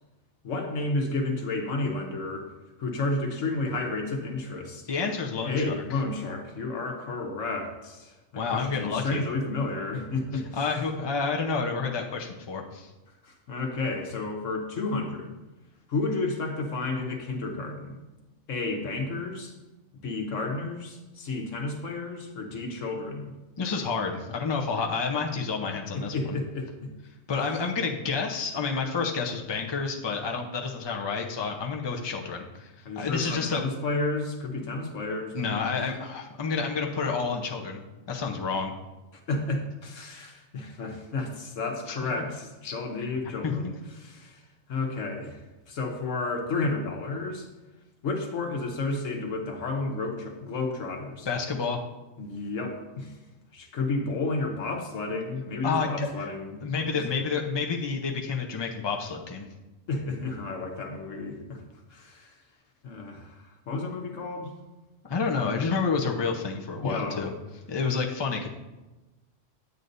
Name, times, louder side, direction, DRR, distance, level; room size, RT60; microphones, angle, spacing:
voice 1, 0.4-2.5 2.8-4.9 5.4-10.6 13.2-15.3 15.9-18.0 18.5-19.5 20.0-23.3 25.9-26.9 32.8-35.7 39.1-43.7 44.0-44.4 44.7-45.4 45.7-47.5 48.0-51.3 52.2-53.1 53.5-57.0 59.9-61.6 61.9-62.4 62.8-64.5 66.8-67.3, left 3 dB, 85° left, 3 dB, 1.4 m, -31 dB
voice 2, 4.9-5.8 8.3-9.2 10.6-12.9 23.6-26.4 27.3-33.6 35.3-37.8 38.1-38.7 41.9-42.0 42.6-42.7 43.4-43.7 51.3-51.8 55.6-56.3 56.6-59.5 65.0-67.3 67.7-68.5, left 5 dB, 25° left, 1 dB, 0.7 m, -29 dB
9.2 x 8.1 x 2.7 m, 1.1 s
omnidirectional pair, 1.3 m